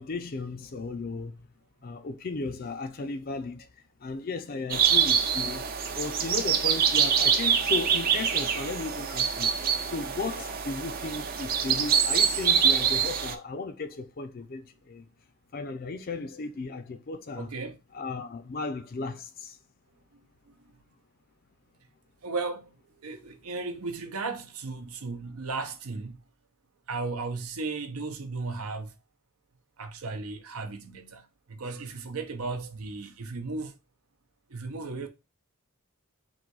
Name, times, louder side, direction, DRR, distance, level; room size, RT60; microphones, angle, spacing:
voice 1, 0.0-1.4 1.8-3.7 4.0-5.7 6.0-9.5 9.9-15.1 15.5-17.5 17.9-19.6, left 3 dB, 40° left, 0.4 m, -35 dB
sound 1, 4.7-13.3, right 7 dB, 40° right, 0.5 m, -25 dB
voice 2, 17.4-17.8 20.1-20.7 22.2-26.2 26.9-28.9 29.8-33.7 34.5-35.1, right 3 dB, 75° right, 0.7 m, -35 dB
3.9 x 2.6 x 4.6 m
head